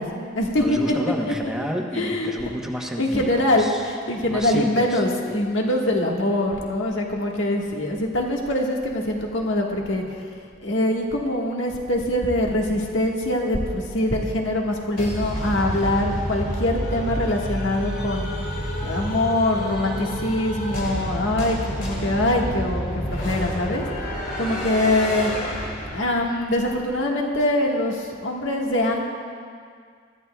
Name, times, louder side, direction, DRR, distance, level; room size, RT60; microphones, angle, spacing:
voice 1, 0.0-0.8 1.9-2.3 3.0-10.2 10.6-18.3 18.8-23.8 24.4-25.3 25.9-29.0, left 1 dB, 80° left, -1 dB, 1.6 m, -23 dB
voice 2, 0.6-3.9 4.3-5.0, equal, 5° right, 0 dB, 1.0 m, -30 dB
sound 1, 15.0-26.4, equal, 50° left, 2.4 m, -29 dB
22.5 x 13.5 x 2.3 m, 2.1 s
head